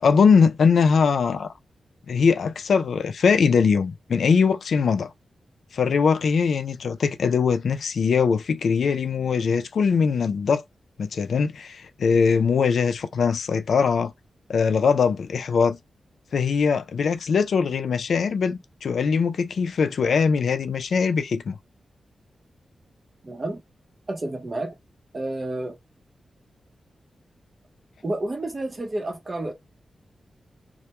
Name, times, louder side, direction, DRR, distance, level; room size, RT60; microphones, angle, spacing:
voice 1, 0.0-1.5 2.1-5.1 5.7-10.6 11.0-14.1 14.5-15.8 16.3-21.6, left 5 dB, 75° left, 0.3 m, -21 dB
voice 2, 23.2-23.6 24.1-24.8 25.1-25.8 28.0-29.5, right 2 dB, 30° right, 0.7 m, -30 dB
2.2 x 2.1 x 2.9 m
wide cardioid pair, 115°, 0 cm